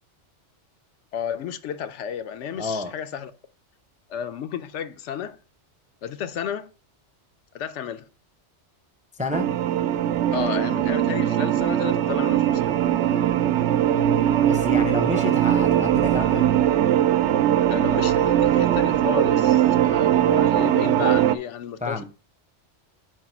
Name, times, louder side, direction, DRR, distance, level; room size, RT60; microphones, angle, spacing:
voice 1, 1.1-3.3 4.1-5.4 6.0-6.7 7.5-8.1 10.3-12.8 17.7-22.0, left 8 dB, 80° left, 0.9 m, -32 dB
voice 2, 2.6-2.9 9.2-9.5 14.4-16.6 21.8-22.0, left 3 dB, 10° right, 0.5 m, -29 dB
sound 1, 9.3-21.4, right 11 dB, 75° right, 0.8 m, -20 dB
4.8 x 4.7 x 5.9 m
omnidirectional pair, 1.2 m